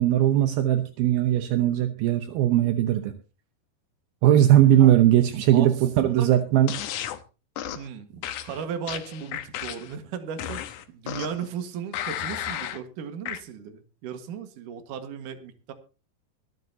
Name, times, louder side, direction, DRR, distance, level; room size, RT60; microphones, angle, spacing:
voice 1, 0.0-3.1 4.2-6.7, right 12 dB, 75° right, 8 dB, 2.7 m, -19 dB
sound 1, 6.7-7.2 7.6-7.9 8.2-10.0 10.4-11.5 11.9-12.8 13.3-13.4, left 11 dB, 70° left, 2.0 m, -33 dB
voice 2, 7.7-15.7, right 7 dB, 60° right, 7 dB, 2.9 m, -36 dB
24.0 x 9.5 x 2.8 m, 0.33 s
omnidirectional pair, 4.5 m